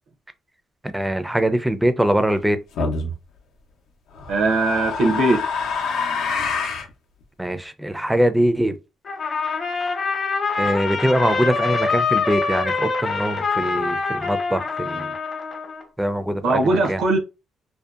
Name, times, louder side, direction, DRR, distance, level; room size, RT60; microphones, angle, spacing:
voice 1, 0.9-2.6 7.4-8.8 10.6-15.1 16.0-17.0, right 1 dB, 5° right, 0.3 m, -22 dB
sound 1, 2.8-3.1 4.2-6.9, left 4 dB, 85° left, 0.5 m, -26 dB
voice 2, 4.3-5.4 16.4-17.2, right 2 dB, 80° right, 0.6 m, -19 dB
Trumpet, 9.1-15.8, left 4 dB, 40° left, 0.7 m, -25 dB
2.7 x 2.1 x 2.3 m
cardioid pair, 90°, 0 cm